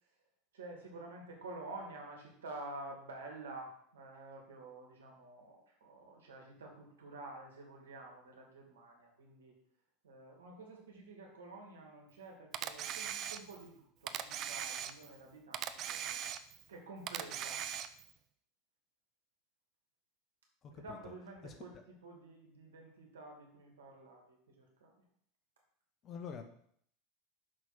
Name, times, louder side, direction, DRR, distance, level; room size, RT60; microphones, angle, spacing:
voice 1, 0.5-9.5 10.0-16.2 16.7-17.7 20.8-21.7 22.0-24.9, right 2 dB, 80° right, 0 dB, 2.3 m, -50 dB
Camera, 12.5-13.7 14.1-15.2 15.5-16.7 17.1-18.1, right 10 dB, 45° right, 0.6 m, -40 dB
voice 2, 20.6-21.1 21.4-21.5 26.0-26.4, left 6 dB, 35° left, 5 dB, 1.4 m, -46 dB
6.2 x 5.5 x 6.0 m, 0.65 s
hypercardioid pair, 85°, 0 cm